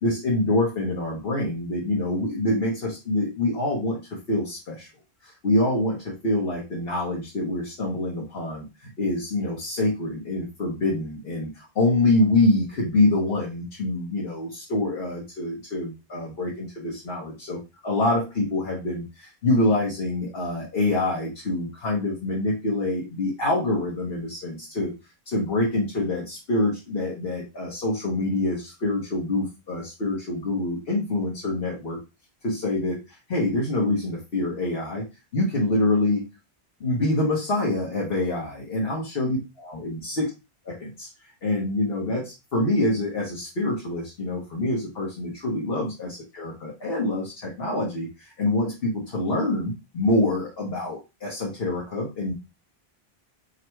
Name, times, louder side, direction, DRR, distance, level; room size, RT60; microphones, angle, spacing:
voice 1, 0.0-4.9 5.2-24.9 25.3-32.0 32.4-35.1 35.3-36.2 36.8-40.3 40.6-41.1 41.4-52.3, left 2 dB, 65° left, -3 dB, 1.4 m, -26 dB
3.9 x 2.5 x 4.5 m, 0.26 s
omnidirectional pair, 1.1 m